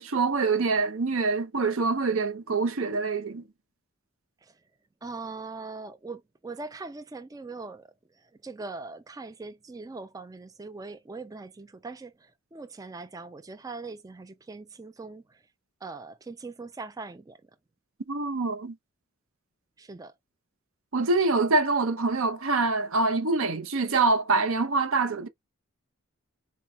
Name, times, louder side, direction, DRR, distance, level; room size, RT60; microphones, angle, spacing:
voice 1, 0.0-3.4 18.1-18.8 20.9-25.3, right 3 dB, 70° right, 0.7 m, -25 dB
voice 2, 5.0-15.4 15.8-17.4 19.8-20.1, right 3 dB, 15° right, 0.3 m, -41 dB
4.4 x 2.3 x 4.2 m
head